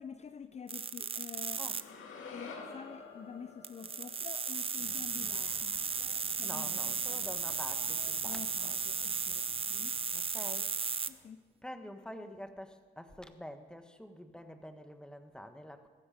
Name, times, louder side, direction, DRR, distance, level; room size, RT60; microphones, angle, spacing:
voice 1, 0.0-1.8 2.3-5.8 6.4-7.0 8.2-10.0 11.1-11.4, left 7 dB, 35° left, 11 dB, 0.6 m, -48 dB
sound 1, 0.7-1.8 3.6-11.1, right 5 dB, 30° right, 0.6 m, -35 dB
sound 2, 1.7-5.9, left 4 dB, 75° left, 2.3 m, -49 dB
sound 3, 4.8-11.3, right 3 dB, 55° right, 2.5 m, -56 dB
voice 2, 6.4-8.8 10.1-11.3 11.6-15.9, equal, 5° left, 8 dB, 1.3 m, -47 dB
15.5 x 14.5 x 5.1 m, 1.4 s
cardioid pair, 90°, 20 cm